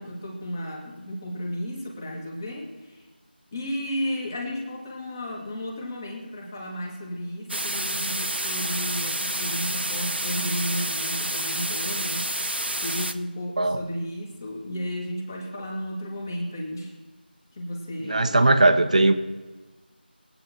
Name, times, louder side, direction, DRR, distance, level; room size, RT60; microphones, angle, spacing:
voice 1, 0.0-3.1 3.5-12.3 12.8-16.9 17.5-18.5, equal, 20° left, -2 dB, 2.4 m, -33 dB
sound 1, 7.5-13.1, right 1 dB, 80° right, 1.1 m, -29 dB
voice 2, 18.1-19.1, right 2 dB, 40° right, 9 dB, 1.0 m, -19 dB
22.5 x 8.9 x 3.1 m, 1.3 s
figure-of-eight pair, 170°, 6 cm